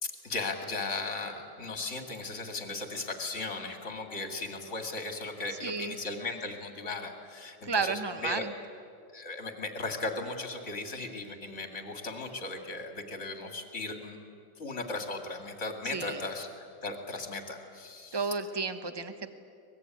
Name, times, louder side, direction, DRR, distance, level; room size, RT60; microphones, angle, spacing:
voice 1, 0.0-8.4 9.1-14.2 14.6-18.2, left 3 dB, 35° left, 5 dB, 2.8 m, -37 dB
voice 2, 5.6-5.9 7.6-8.5 15.9-16.2 18.1-19.3, right 4 dB, 20° right, 10 dB, 0.8 m, -32 dB
23.5 x 21.0 x 9.5 m, 2.4 s
omnidirectional pair, 2.1 m